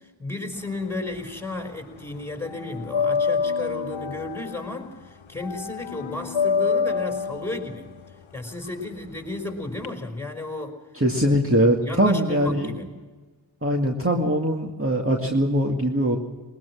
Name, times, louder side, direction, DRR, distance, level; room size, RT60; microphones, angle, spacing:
voice 1, 0.0-7.9 8.3-10.8 11.2-11.3 11.8-12.9, left 2 dB, 5° left, 3 dB, 5.4 m, -33 dB
sound 1, 0.6-1.7 2.0-9.9, left 5 dB, 75° left, 1.1 m, -28 dB
voice 2, 10.9-12.7 13.6-16.2, equal, 30° right, 0 dB, 2.3 m, -22 dB
21.5 x 20.5 x 6.3 m, 1.3 s
cardioid pair, 40°, 46 cm